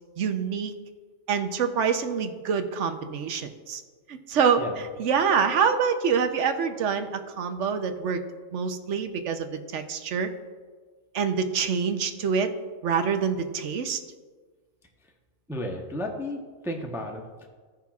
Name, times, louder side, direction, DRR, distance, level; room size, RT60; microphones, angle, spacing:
voice 1, 0.2-0.7 1.3-3.8 4.1-8.2 8.5-10.3 11.1-12.5 12.8-14.0, right 6 dB, 65° right, 7 dB, 1.0 m, -26 dB
voice 2, 15.5-17.2, left 1 dB, 5° right, 2 dB, 0.6 m, -33 dB
16.5 x 5.8 x 2.4 m, 1.4 s
omnidirectional pair, 1.4 m